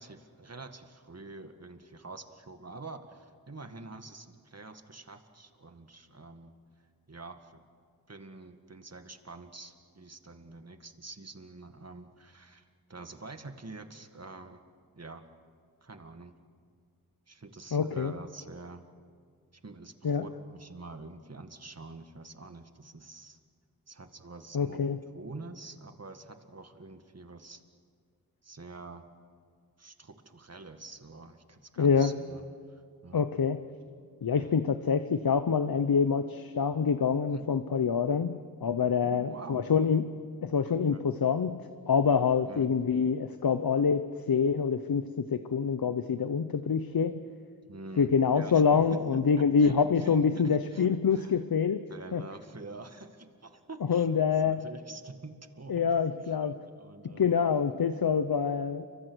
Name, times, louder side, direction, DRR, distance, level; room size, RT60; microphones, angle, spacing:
voice 1, 0.0-6.5 7.1-7.6 8.1-14.6 15.0-15.2 15.8-16.3 17.3-18.9 19.6-23.4 23.9-24.8 25.1-27.6 28.4-29.1 29.8-32.4 32.7-33.2 34.3-34.5 37.3-37.5 39.0-39.6 40.7-41.0 42.4-42.7 47.6-51.4 51.9-55.9 56.2-56.5 56.8-57.3, right 3 dB, 45° right, 7 dB, 1.9 m, -46 dB
voice 2, 17.7-18.1 20.0-20.2 24.5-25.0 31.8-32.1 33.1-33.6 34.2-40.1 40.4-47.2 48.0-51.8 52.1-52.2 53.9-54.6 55.7-56.5 57.0-58.9, left 6 dB, 70° left, 11 dB, 0.9 m, -26 dB
29.5 x 24.5 x 6.3 m, 2.1 s
cardioid pair, 50°, 36 cm